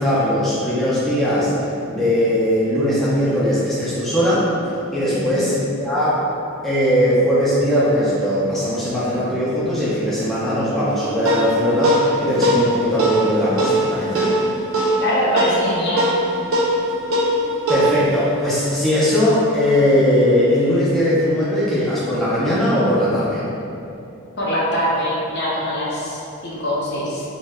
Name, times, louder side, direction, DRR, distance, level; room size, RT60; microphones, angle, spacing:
voice 1, 0.0-1.5 1.9-4.4 4.9-5.5 5.8-6.2 6.6-14.3 17.7-23.4, equal, ahead, -11 dB, 0.4 m, -19 dB
voice 2, 5.1-5.4 15.0-16.1 24.4-27.2, equal, 50° left, -6 dB, 0.6 m, -23 dB
sound 1, 10.9-19.6, right 1 dB, 65° right, 0.4 m, -22 dB
2.7 x 2.1 x 3.3 m, 2.6 s
head